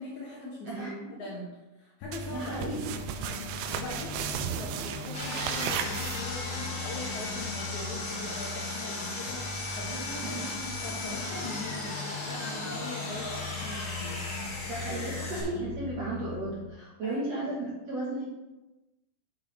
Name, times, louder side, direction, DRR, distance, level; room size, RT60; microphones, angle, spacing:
voice 1, 0.0-2.9 3.7-14.2 17.0-17.2, left 2 dB, 60° left, -5 dB, 2.3 m, -41 dB
voice 2, 0.7-1.3 2.3-3.0 10.2-10.4 14.7-18.3, right 2 dB, 60° right, -5 dB, 1.9 m, -35 dB
sound 1, 2.0-16.7, left 5 dB, 90° left, 2.8 m, -40 dB
sound 2, 2.1-6.6, right 9 dB, 90° right, 2.5 m, -35 dB
Sawing, 5.1-15.4, left 2 dB, 40° left, 2.6 m, -37 dB
8.2 x 7.6 x 3.3 m, 1.1 s
omnidirectional pair, 4.3 m